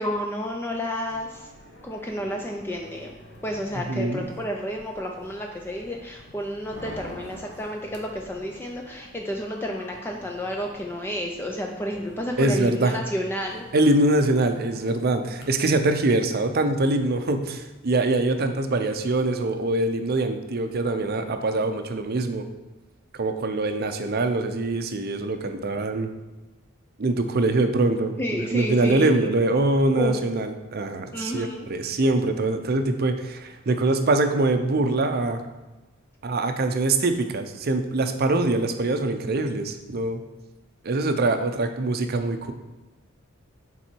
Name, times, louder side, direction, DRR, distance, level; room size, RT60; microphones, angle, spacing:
voice 1, 0.0-1.5 1.8-3.2 3.4-13.7 28.2-29.3 29.9-30.1 31.1-31.7, equal, 10° left, 1 dB, 0.4 m, -31 dB
sound 1, 1.1-15.4, left 1 dB, 55° left, 1.1 m, -46 dB
voice 2, 3.9-4.2 12.4-13.0 13.7-22.4 23.1-26.1 27.0-35.4 36.2-40.2 40.8-42.5, right 2 dB, 45° right, 7 dB, 0.6 m, -23 dB
7.2 x 3.9 x 4.5 m, 1.1 s
head